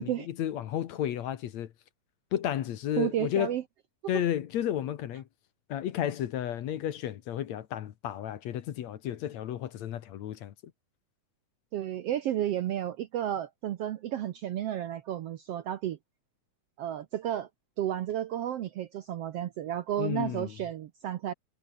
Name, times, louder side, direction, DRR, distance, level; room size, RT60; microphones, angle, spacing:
voice 1, 0.0-1.7 2.3-3.5 4.1-5.3 5.7-10.5 20.0-20.5, left 11 dB, 65° left, 2.3 m, -32 dB
voice 2, 3.0-3.6 11.7-16.0 16.8-17.5 17.8-21.3, right 11 dB, 70° right, 1.5 m, -32 dB
omnidirectional pair, 3.7 m